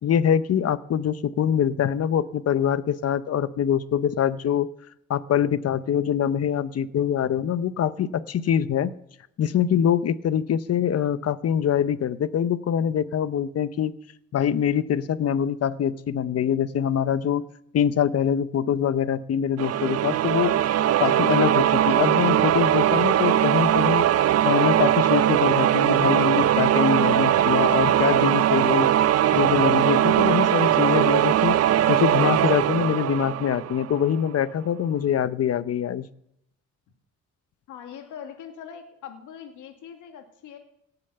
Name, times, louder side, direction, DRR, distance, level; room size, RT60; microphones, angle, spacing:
voice 1, 0.0-4.7 5.1-8.9 9.4-13.9 14.3-17.4 17.7-20.5 21.0-24.1 24.5-28.9 29.3-31.6 31.9-36.1, left 9 dB, 55° left, 15 dB, 0.9 m, -24 dB
sound 1, 19.6-34.2, right 11 dB, 55° right, 0.6 m, -20 dB
voice 2, 37.7-40.6, left 8 dB, 90° left, 5 dB, 2.1 m, -42 dB
17.5 x 6.9 x 6.9 m, 0.76 s
cardioid pair, 90°, 30 cm